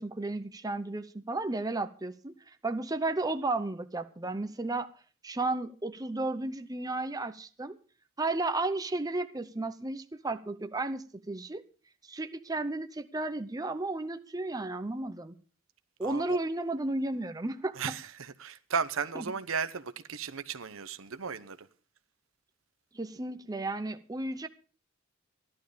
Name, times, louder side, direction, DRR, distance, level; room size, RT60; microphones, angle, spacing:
voice 1, 0.0-2.3 2.6-4.9 5.2-7.8 8.2-11.6 12.1-15.4 16.0-17.8 19.1-19.2 22.9-24.5, right 2 dB, 20° right, 0.7 m, -33 dB
voice 2, 16.0-16.4 17.8-21.6, right 6 dB, 85° right, 0.9 m, -35 dB
15.5 x 11.5 x 5.1 m
head